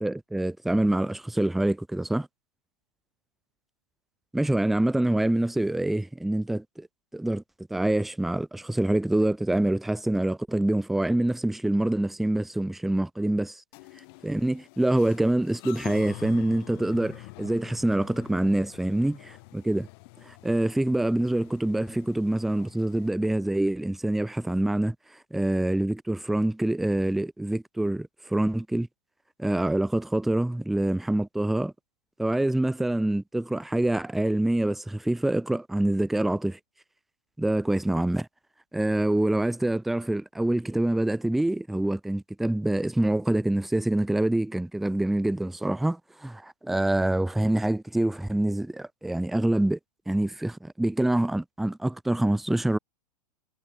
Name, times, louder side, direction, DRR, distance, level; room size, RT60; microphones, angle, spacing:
voice 1, 0.0-2.3 4.3-6.9 7.1-7.4 7.7-13.6 14.2-19.9 20.2-25.0 25.3-28.9 29.4-31.7 32.2-36.6 37.4-38.3 38.7-49.8 50.1-52.8, right 1 dB, ahead, 0.3 m, -26 dB
sound 1, 13.7-23.1, left 29 dB, 40° left, 6.5 m, -47 dB
supercardioid pair, 165°, 21 cm